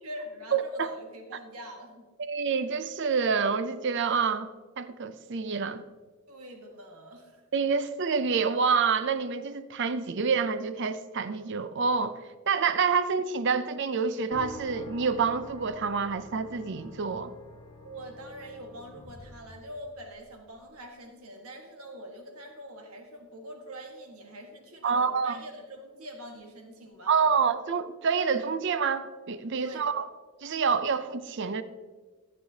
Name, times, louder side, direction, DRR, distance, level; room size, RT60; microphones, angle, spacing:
voice 1, 0.0-2.1 6.3-7.4 17.8-27.3 29.6-29.9, equal, 80° right, 2 dB, 1.6 m, -44 dB
voice 2, 0.5-0.9 2.2-4.5 4.8-5.8 7.5-12.2 12.5-17.3 24.8-25.4 27.1-30.0 30.4-31.6, right 5 dB, 55° right, 13 dB, 0.5 m, -27 dB
sound 1, 14.3-20.2, equal, 20° left, 1.2 m, -47 dB
14.0 x 8.3 x 2.8 m, 1.4 s
head